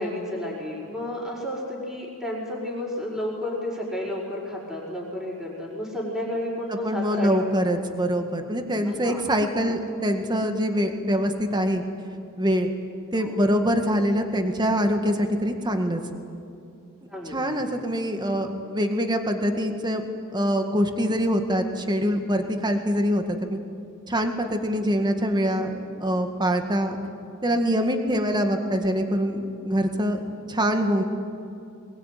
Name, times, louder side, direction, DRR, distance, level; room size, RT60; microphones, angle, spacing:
voice 1, 0.0-7.4 7.7-7.8 8.8-9.2 9.7-9.8 13.1-13.4 17.1-17.7, left 1 dB, ahead, -10 dB, 5.5 m, -32 dB
voice 2, 6.8-11.8 12.4-12.7 13.1-16.0 17.3-20.0 20.3-23.6 24.1-27.0 27.4-30.2 30.5-31.0, equal, 20° right, 5 dB, 1.9 m, -24 dB
23.0 x 22.0 x 9.4 m, 2.6 s
head